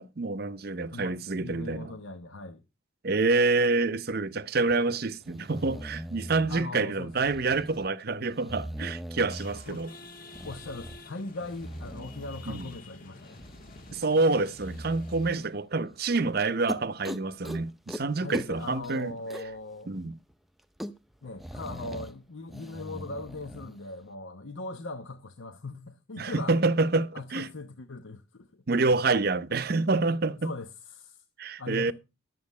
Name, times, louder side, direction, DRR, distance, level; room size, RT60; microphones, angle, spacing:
voice 1, 0.0-1.9 3.0-9.9 12.5-12.7 13.9-19.1 19.9-20.2 26.2-27.5 28.7-30.5 31.4-31.9, right 3 dB, 50° right, 0.7 m, -27 dB
voice 2, 0.9-2.6 6.5-7.1 9.7-9.9 10.4-13.4 18.2-19.9 21.2-26.6 27.1-28.6 30.4-31.2 31.6-31.9, left 2 dB, 80° left, 1.0 m, -40 dB
sound 1, 4.7-4.8 5.2-6.6 7.1-7.9 8.3-9.8 10.3-11.0 11.4-12.8 13.2-14.0 14.5-15.4 15.9-16.0 16.4-16.5 16.7-17.6 17.9-18.0 18.3-19.6 19.9-20.0 20.3-20.4 20.6-22.1 22.5-23.7, equal, ahead, 0.6 m, -41 dB
sound 2, 9.3-15.5, left 3 dB, 45° left, 1.5 m, -50 dB
12.0 x 7.7 x 5.4 m
head